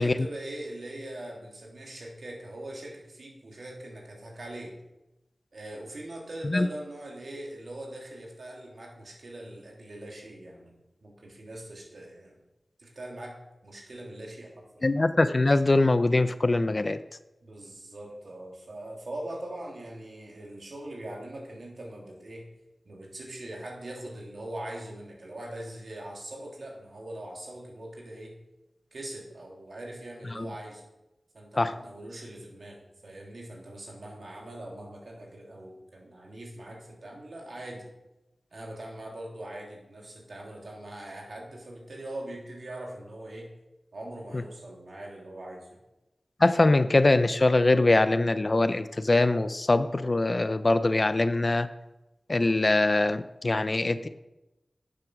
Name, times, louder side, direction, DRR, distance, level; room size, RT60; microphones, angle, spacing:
voice 1, 0.0-4.7 5.5-12.4 12.8-14.8 17.4-22.5 22.8-28.4 28.9-30.9 31.3-37.9 38.5-43.5 43.9-45.8, right 1 dB, 70° right, -1 dB, 3.0 m, -41 dB
voice 2, 14.8-17.0 31.6-31.8 46.4-51.7 52.3-54.1, left 2 dB, 45° left, 12 dB, 0.6 m, -23 dB
9.5 x 7.6 x 6.3 m, 0.97 s
wide cardioid pair, 55°, 0 cm